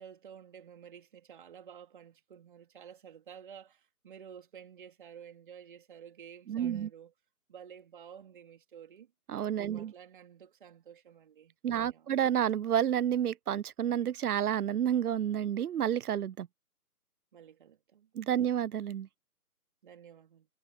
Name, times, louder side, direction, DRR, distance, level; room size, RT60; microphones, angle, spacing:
voice 1, 0.0-7.1 7.5-9.1 9.6-12.1 17.3-18.1 19.8-20.5, right 8 dB, 35° right, 3.6 m, -52 dB
voice 2, 6.5-6.9 9.3-9.9 11.6-16.5 18.2-19.1, right 10 dB, 70° right, 0.6 m, -30 dB
figure-of-eight pair, 165°, 46 cm